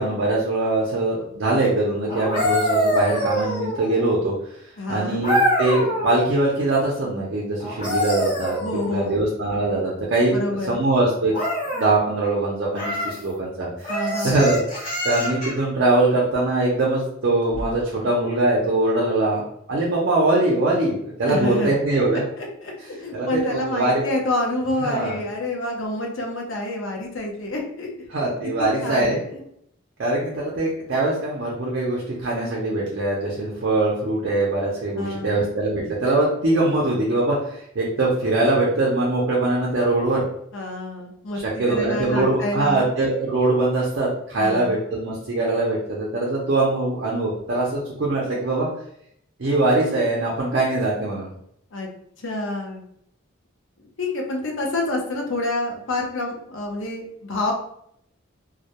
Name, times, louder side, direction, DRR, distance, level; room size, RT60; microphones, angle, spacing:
voice 1, 0.0-4.3 4.9-10.4 10.7-11.3 11.7-13.9 14.2-14.6 15.0-19.4 19.7-22.2 23.1-24.0 24.8-25.2 28.1-29.2 30.0-40.2 41.3-48.7 49.4-51.3, right 2 dB, 55° right, -3 dB, 0.5 m, -22 dB
sound 1, 2.1-4.1 5.2-6.2 7.6-9.2 11.3-11.9 12.7-13.2 13.8-15.6 17.5-17.7, equal, 35° left, 1.1 m, -25 dB
voice 2, 4.8-5.2 8.6-9.2 10.3-10.8 13.9-14.4 21.2-21.7 22.4-27.9 28.4-29.4 35.0-35.5 40.5-42.9 44.4-44.8 51.7-51.9 52.2-52.8 54.0-57.5, left 2 dB, 65° left, 1 dB, 0.6 m, -28 dB
2.2 x 2.1 x 2.8 m, 0.71 s
head